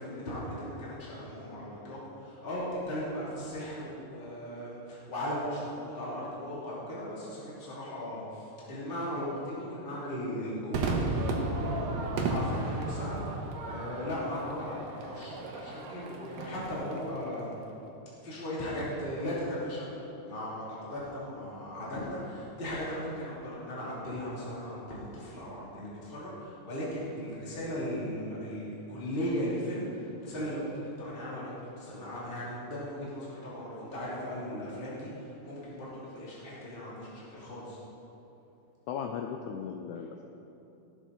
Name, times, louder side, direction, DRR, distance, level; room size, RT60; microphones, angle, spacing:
voice 1, 0.0-17.6 18.2-19.9 20.2-37.8, equal, 15° left, -8 dB, 2.6 m, -37 dB
Crowd / Fireworks, 10.7-17.3, right 3 dB, 80° right, 2.7 m, -34 dB
voice 2, 38.9-40.2, left 7 dB, 85° left, 4 dB, 1.7 m, -37 dB
18.0 x 8.1 x 4.0 m, 2.9 s
omnidirectional pair, 4.0 m